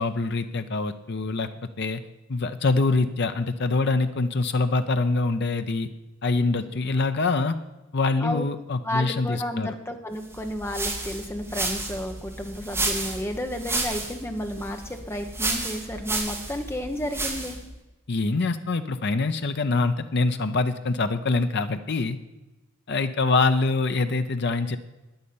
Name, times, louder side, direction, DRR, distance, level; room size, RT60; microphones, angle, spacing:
voice 1, 0.0-1.5 1.8-2.0 2.3-5.9 6.2-7.6 7.9-9.8 18.1-22.2 22.9-24.8, left 3 dB, 50° left, 9 dB, 0.6 m, -24 dB
voice 2, 8.8-17.6, left 1 dB, 10° left, 5 dB, 1.1 m, -32 dB
sound 1, 10.3-17.7, right 2 dB, 10° right, 2.1 m, -31 dB
9.7 x 9.5 x 8.6 m, 1.1 s
head